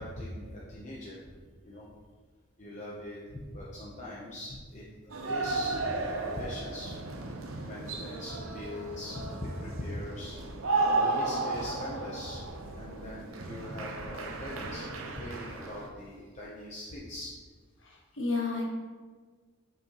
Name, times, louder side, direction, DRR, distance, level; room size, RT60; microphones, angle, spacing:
voice 1, 0.0-1.3 1.6-1.9 2.6-7.0 7.7-10.5 11.0-12.4 12.7-17.3, left 1 dB, 35° left, -6 dB, 0.8 m, -41 dB
sound 1, 5.1-15.9, right 3 dB, 85° right, 0.8 m, -34 dB
voice 2, 17.8-18.7, left 3 dB, 70° left, 0 dB, 1.2 m, -31 dB
7.7 x 5.8 x 3.0 m, 1.5 s
head